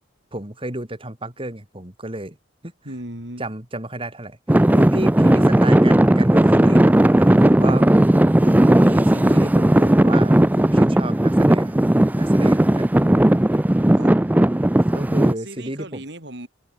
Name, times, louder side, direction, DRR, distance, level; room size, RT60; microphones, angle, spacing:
voice 1, 0.3-2.4 2.6-2.7 3.4-4.4 4.7-7.9 8.4-11.9 12.1-12.9 13.5-13.6 14.9-16.0, right 1 dB, 30° right, 3.4 m, -31 dB
voice 2, 2.8-3.4 5.3-5.4 13.9-14.2 15.4-16.5, right 1 dB, 65° right, 6.1 m, -36 dB
Traffic noise roadway noise / Engine, 4.5-15.3, right 1 dB, 10° right, 0.4 m, -16 dB
head